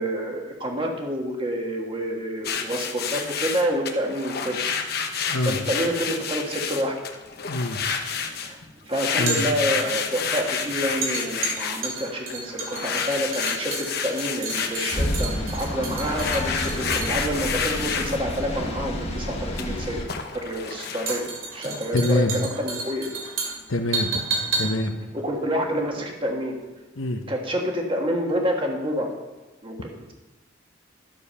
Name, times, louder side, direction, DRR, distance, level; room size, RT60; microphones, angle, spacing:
voice 1, 0.0-4.7 5.5-6.9 8.4-8.6 8.9-20.0 20.3-23.1 23.4-23.5 25.1-26.5 27.3-29.1 29.6-30.1, equal, 25° right, 1 dB, 1.5 m, -28 dB
sound 1, 2.4-8.6 8.9-15.2 15.6-18.4 19.3-21.8, left 6 dB, 50° left, 1.0 m, -30 dB
voice 2, 5.3-5.6 7.5-7.8 9.2-9.5 21.9-22.5 23.7-24.2 24.6-24.9 26.9-27.2, left 1 dB, 85° left, 4 dB, 1.0 m, -24 dB
sound 2, 7.1-26.4 26.6-26.8, right 3 dB, 90° right, 2.9 m, -33 dB
sound 3, 14.9-20.0, left 1 dB, 30° left, 1.2 m, -30 dB
12.0 x 6.9 x 5.6 m, 1.2 s
head